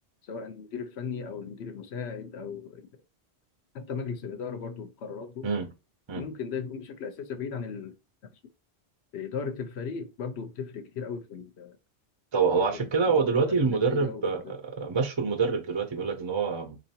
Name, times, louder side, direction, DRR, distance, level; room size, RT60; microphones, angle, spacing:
voice 1, 0.2-2.9 3.7-5.5 6.1-8.0 9.1-11.8 12.7-14.5, left 6 dB, 80° left, 1.0 m, -37 dB
voice 2, 12.3-16.8, right 5 dB, 40° right, 0.4 m, -26 dB
3.7 x 3.0 x 2.7 m
omnidirectional pair, 1.1 m